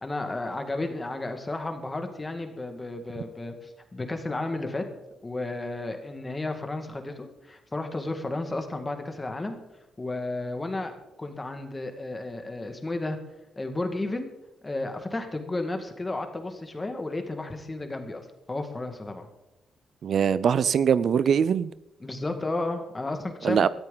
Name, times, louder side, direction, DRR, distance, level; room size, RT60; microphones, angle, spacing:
voice 1, 0.0-4.8 5.2-9.6 10.0-10.9 11.2-13.2 13.6-14.3 14.6-19.3 22.0-23.7, left 2 dB, 15° left, 6 dB, 1.9 m, -33 dB
voice 2, 20.0-21.7 23.4-23.7, right 7 dB, 55° right, 17 dB, 0.4 m, -22 dB
17.0 x 13.5 x 3.9 m, 0.93 s
cardioid pair, 140°, 0 cm